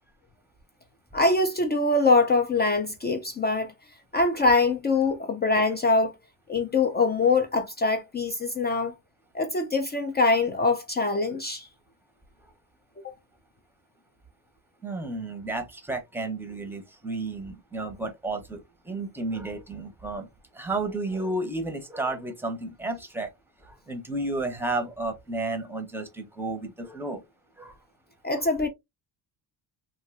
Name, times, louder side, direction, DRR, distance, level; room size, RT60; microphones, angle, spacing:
voice 1, 1.1-3.7 4.1-6.1 6.5-8.9 9.3-11.7 13.0-13.1 28.2-28.7, left 3 dB, 25° left, 0.4 m, -23 dB
voice 2, 14.8-20.3 20.5-23.3 23.6-27.2 27.6-27.8 28.4-28.5, right 2 dB, 5° right, 0.7 m, -32 dB
3.1 x 2.6 x 2.4 m
cardioid pair, 110°, 45 cm